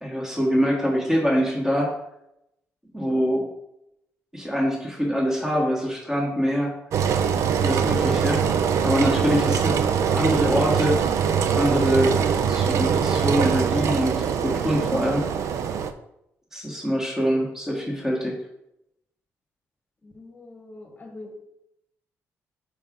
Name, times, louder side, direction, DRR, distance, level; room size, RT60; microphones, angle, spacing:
voice 1, 0.0-1.9 2.9-3.5 4.3-6.7 7.6-8.4 8.8-11.0 11.5-12.1 12.5-15.3 16.5-18.4, equal, 10° right, -3 dB, 1.5 m, -24 dB
Engine, 6.9-15.9, right 7 dB, 70° right, 0.4 m, -23 dB
voice 2, 20.0-21.4, left 2 dB, 25° left, 4 dB, 1.3 m, -43 dB
5.3 x 4.8 x 3.7 m, 0.82 s
cardioid pair, 100°, 5 cm